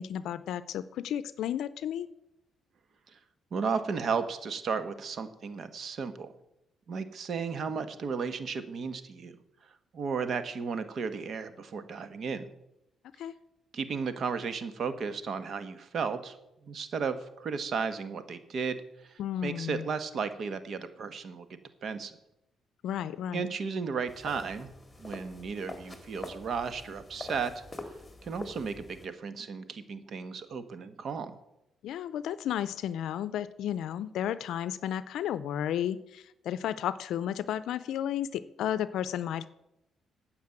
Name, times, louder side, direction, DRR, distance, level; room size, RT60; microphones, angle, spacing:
voice 1, 0.0-2.1 13.2-13.3 19.2-19.9 22.8-23.5 31.8-39.5, left 10 dB, 80° left, 16 dB, 0.5 m, -33 dB
voice 2, 3.5-6.3 6.9-9.4 9.9-12.5 13.7-16.4 16.6-21.5 21.8-22.1 23.3-24.7 25.0-27.5 28.2-31.3, right 5 dB, 55° right, 11 dB, 1.3 m, -34 dB
sound 1, 24.1-29.1, left 2 dB, 15° left, 1.9 m, -45 dB
9.5 x 6.8 x 8.9 m, 0.87 s
cardioid pair, 90°, 0 cm